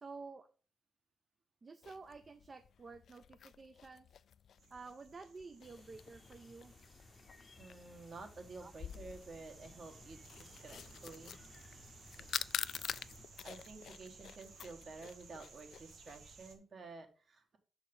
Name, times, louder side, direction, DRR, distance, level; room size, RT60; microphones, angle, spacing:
voice 1, 0.0-0.5 1.6-4.1 4.7-6.7 8.6-8.7, right 4 dB, 35° right, 8 dB, 0.5 m, -51 dB
sound 1, 1.8-16.2, left 8 dB, 70° left, 0.3 m, -48 dB
sound 2, 4.6-16.5, right 4 dB, 85° right, 1.6 m, -59 dB
sound 3, 5.6-13.3, left 3 dB, 25° left, 0.7 m, -60 dB
voice 2, 7.6-11.4 13.4-17.6, right 3 dB, 50° right, 5 dB, 1.5 m, -51 dB
6.9 x 4.6 x 5.4 m, 0.37 s
wide cardioid pair, 155°, 0 cm